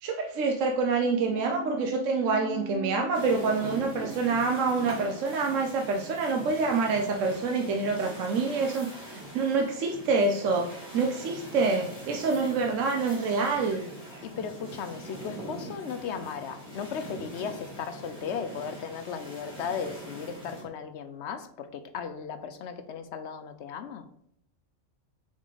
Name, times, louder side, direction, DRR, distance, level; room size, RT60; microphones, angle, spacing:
voice 1, 0.0-13.8, right 4 dB, 70° right, 2 dB, 1.0 m, -27 dB
sound 1, 0.9-7.5 7.7-7.8, equal, 50° left, 2.8 m, -41 dB
sound 2, 3.1-20.6, right 1 dB, 5° right, 2.3 m, -43 dB
voice 2, 14.2-24.1, left 7 dB, 65° left, 10 dB, 0.8 m, -36 dB
6.3 x 3.8 x 3.9 m, 0.71 s
omnidirectional pair, 1.4 m